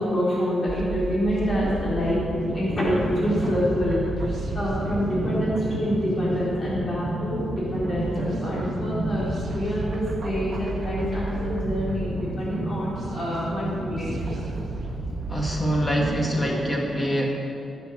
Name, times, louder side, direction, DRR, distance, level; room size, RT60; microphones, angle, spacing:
voice 1, 0.0-2.2 2.5-4.0 4.5-9.2 9.5-14.4, equal, 30° left, -8 dB, 3.3 m, -26 dB
sound 1, 0.7-16.6, right 2 dB, 40° right, 1.7 m, -31 dB
voice 2, 15.3-17.3, equal, 15° left, -1 dB, 1.8 m, -25 dB
15.0 x 7.0 x 6.3 m, 2.7 s
wide cardioid pair, 155°, 0 cm